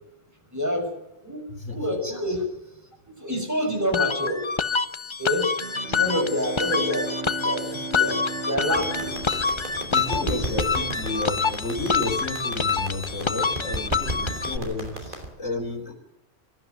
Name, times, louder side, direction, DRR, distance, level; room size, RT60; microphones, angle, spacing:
voice 1, 0.5-0.9 1.2-2.4 3.2-4.4 5.2-5.5 6.0-7.1 7.4-9.5 10.2-10.7, equal, 15° right, 2 dB, 6.1 m, -28 dB
sound 1, 3.9-14.6, left 5 dB, 30° left, 0.7 m, -27 dB
Bowed string instrument, 5.6-10.5, right 4 dB, 65° right, 1.5 m, -36 dB
sound 2, 8.7-15.3, right 1 dB, 40° right, 4.8 m, -34 dB
voice 2, 9.9-15.9, left 2 dB, 70° left, 0 dB, 4.4 m, -32 dB
25.0 x 12.5 x 9.4 m, 0.88 s
omnidirectional pair, 1.3 m